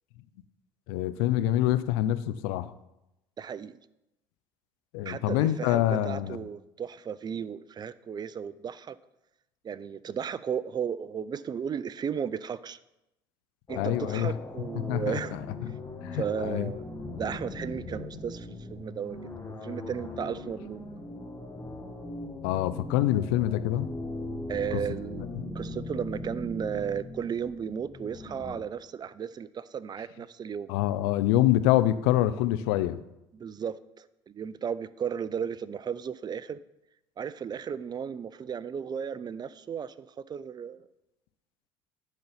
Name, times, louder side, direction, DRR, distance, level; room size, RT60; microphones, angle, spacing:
voice 1, 0.9-2.7 4.9-6.4 13.8-14.3 14.7-16.7 22.4-23.9 24.7-24.8 30.7-33.0, left 13 dB, 80° left, 14 dB, 0.4 m, -26 dB
voice 2, 3.4-3.8 5.0-9.0 9.6-12.8 13.7-15.4 16.1-16.9 17.2-20.8 24.5-25.2 25.5-30.7 33.3-36.6 37.2-40.9, right 7 dB, 35° right, 17 dB, 0.4 m, -35 dB
sound 1, 13.7-28.6, left 2 dB, 25° left, 1.5 m, -40 dB
10.5 x 4.0 x 5.7 m, 0.90 s
hypercardioid pair, 65°, 12 cm